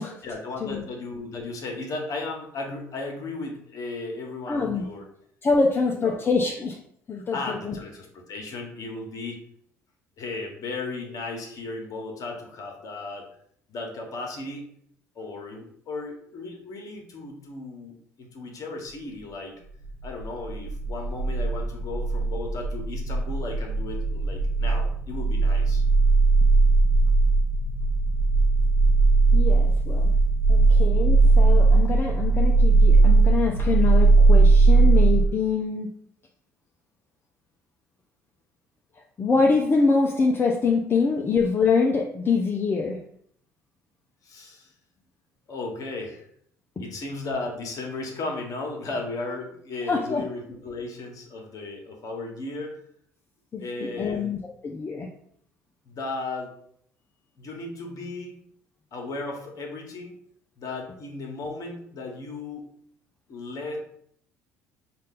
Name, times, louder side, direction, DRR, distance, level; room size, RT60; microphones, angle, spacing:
voice 1, 0.2-5.1 5.8-6.2 7.3-9.4 10.2-13.3 13.7-14.7 15.1-19.6 20.0-25.8 39.9-40.0 44.2-44.7 45.5-46.2 46.8-52.8 53.6-54.3 55.8-56.5 57.4-58.3 58.9-60.1 60.6-62.6 63.3-63.8, left 3 dB, 45° left, 2 dB, 1.3 m, -35 dB
voice 2, 4.5-4.8 5.4-6.8 7.1-7.7 29.3-30.1 30.5-35.9 39.2-43.0 46.8-46.9 49.9-50.2 53.5-54.4 54.6-55.1, left 4 dB, 30° left, 0 dB, 0.6 m, -25 dB
sound 1, 19.8-35.3, right 3 dB, 85° left, 0.4 m, -19 dB
5.3 x 2.5 x 3.7 m, 0.65 s
figure-of-eight pair, 55°, 8 cm